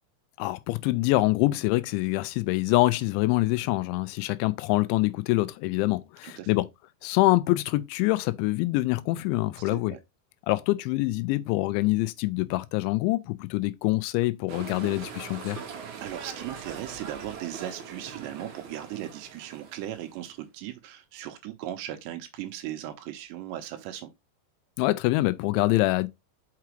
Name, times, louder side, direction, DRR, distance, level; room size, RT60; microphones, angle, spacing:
voice 1, 0.4-6.7 7.0-10.0 10.5-15.6 24.8-26.1, left 19 dB, 85° left, 2.9 m, -25 dB
sound 1, 14.5-20.4, right 6 dB, 60° right, 2.0 m, -41 dB
voice 2, 16.0-24.1, right 12 dB, 80° right, 2.8 m, -37 dB
5.9 x 5.8 x 3.1 m
omnidirectional pair, 5.4 m